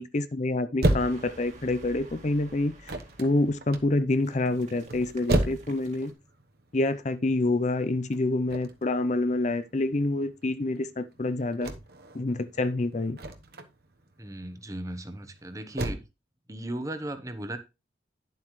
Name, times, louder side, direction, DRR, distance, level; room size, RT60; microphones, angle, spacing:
voice 1, 0.0-2.7 3.2-6.1 6.7-11.7 12.1-13.2, left 2 dB, 40° left, 0.6 m, -27 dB
sound 1, 0.8-15.9, right 1 dB, 60° right, 1.0 m, -33 dB
sound 2, 1.0-6.1, right 1 dB, 40° right, 1.9 m, -50 dB
voice 2, 14.2-16.0 16.5-17.6, right 1 dB, 20° right, 1.0 m, -36 dB
11.0 x 7.5 x 3.1 m
head